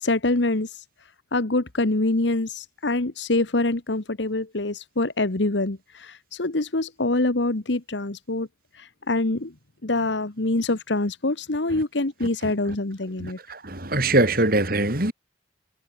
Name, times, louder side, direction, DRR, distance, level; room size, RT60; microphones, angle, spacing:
voice 1, 0.0-0.8 1.3-8.5 8.7-9.5 9.8-13.4, left 2 dB, 70° left, 1.4 m, -25 dB
voice 2, 13.2-15.1, right 2 dB, 50° right, 4.1 m, -22 dB
head